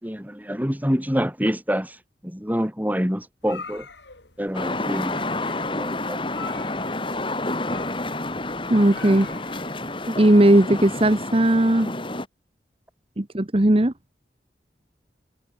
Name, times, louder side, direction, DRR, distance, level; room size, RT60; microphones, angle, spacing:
voice 1, 0.0-2.0 2.2-3.9 4.4-5.2 5.7-6.2, equal, 10° right, 4.5 m, -26 dB
sound 1, 3.4-10.1, left 4 dB, 85° left, 7.1 m, -44 dB
sound 2, 4.5-12.3, left 2 dB, 30° left, 6.0 m, -29 dB
voice 2, 8.7-9.3 10.1-11.9 13.2-13.9, right 1 dB, 35° right, 1.1 m, -17 dB
head